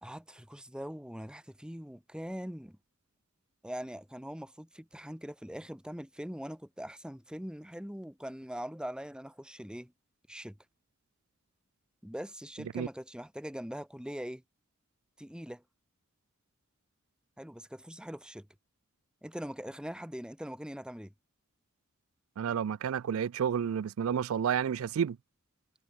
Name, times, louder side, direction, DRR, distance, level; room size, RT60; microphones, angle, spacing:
voice 1, 0.0-2.8 3.6-9.9 10.3-10.6 12.0-14.4 15.2-15.6 17.4-18.5 19.2-21.1, equal, 5° right, 2.2 m, -42 dB
voice 2, 22.4-25.2, right 8 dB, 70° right, 0.4 m, -30 dB
head